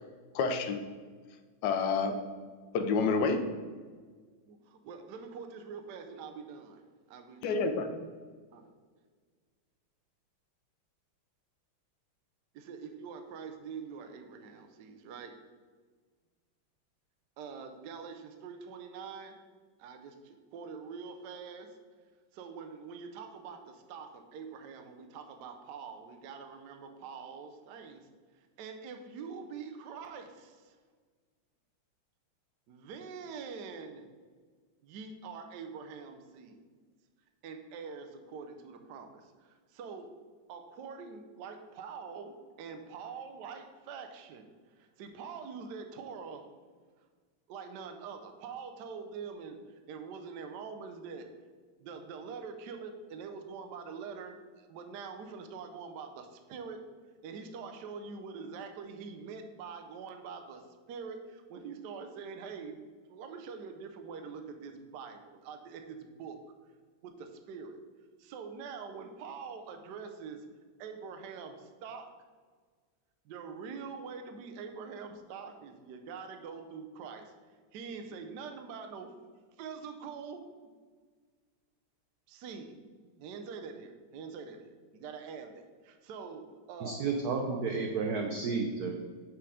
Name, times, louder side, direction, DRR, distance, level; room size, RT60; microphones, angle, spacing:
voice 1, 0.3-0.8 1.6-2.2 2.7-3.4 7.4-7.9, left 4 dB, 70° left, 7 dB, 1.1 m, -28 dB
voice 2, 4.5-6.8 7.1-7.7 8.5-8.7 12.5-15.3 17.4-19.4 19.8-21.7 22.3-28.0 28.6-30.8 32.7-34.1 34.8-36.6 37.4-40.1 40.5-44.5 44.8-46.5 47.5-49.6 49.9-51.3 51.8-56.8 57.2-60.6 60.9-62.8 63.1-66.4 67.0-67.8 68.2-70.4 70.8-72.1 73.2-77.3 77.7-79.1 79.6-80.5 82.3-82.7 83.0-87.7, right 5 dB, 70° right, 6 dB, 1.1 m, -44 dB
voice 3, 86.8-88.9, right 4 dB, 85° right, 3 dB, 0.8 m, -32 dB
6.1 x 4.6 x 4.9 m, 1.5 s
omnidirectional pair, 2.4 m